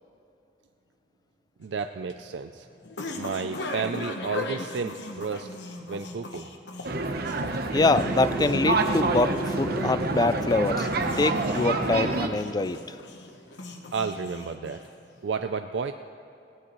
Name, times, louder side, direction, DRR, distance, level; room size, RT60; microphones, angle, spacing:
sound 1, 1.6-15.2, left 2 dB, 80° left, 1.1 m, -39 dB
voice 1, 1.6-2.7 3.2-5.5 5.9-6.5 13.9-14.8 15.2-15.9, right 5 dB, 80° right, 7 dB, 0.4 m, -31 dB
sound 2, 6.8-12.3, right 2 dB, 60° right, 0.9 m, -27 dB
voice 2, 7.7-10.9 11.2-12.8, left 3 dB, 25° left, 14 dB, 0.4 m, -24 dB
Telephone, 7.9-9.9, equal, 5° right, 1.4 m, -36 dB
20.5 x 16.0 x 3.1 m, 2.7 s
head